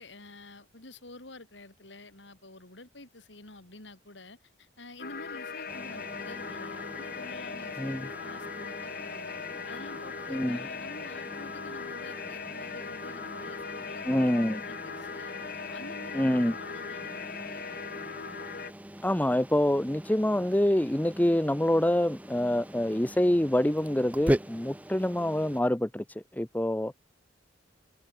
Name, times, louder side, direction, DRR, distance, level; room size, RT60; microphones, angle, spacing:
voice 1, 0.0-9.4 9.7-14.3 14.6-18.2, left 2 dB, 70° left, 4.2 m, -49 dB
sound 1, 5.0-18.7, left 5 dB, 55° left, 5.0 m, -39 dB
sound 2, 5.7-25.6, equal, 10° right, 1.3 m, -40 dB
voice 2, 14.1-14.6 16.1-16.5 19.0-26.0 26.3-26.9, left 1 dB, 10° left, 0.8 m, -26 dB
head